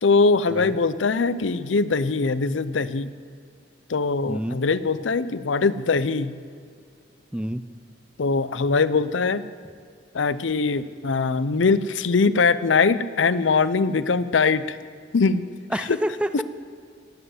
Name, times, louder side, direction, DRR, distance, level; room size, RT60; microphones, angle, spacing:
voice 1, 0.0-3.1 3.9-6.4 8.2-9.4 10.1-14.7 15.1-15.4 16.3-16.4, left 4 dB, 90° left, 15 dB, 0.6 m, -22 dB
voice 2, 7.3-7.6 15.7-16.4, right 1 dB, 5° right, 11 dB, 0.4 m, -28 dB
18.0 x 7.9 x 7.8 m, 2.2 s
head